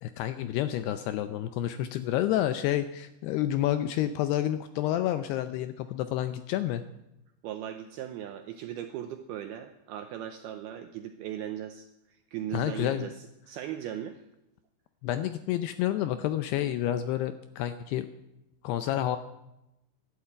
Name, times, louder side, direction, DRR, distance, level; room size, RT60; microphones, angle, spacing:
voice 1, 0.0-6.8 12.5-13.1 15.0-18.1 18.6-19.2, left 12 dB, 80° left, 10 dB, 2.4 m, -29 dB
voice 2, 7.4-14.2, right 10 dB, 85° right, 7 dB, 2.2 m, -38 dB
12.5 x 11.5 x 8.6 m, 0.89 s
omnidirectional pair, 5.3 m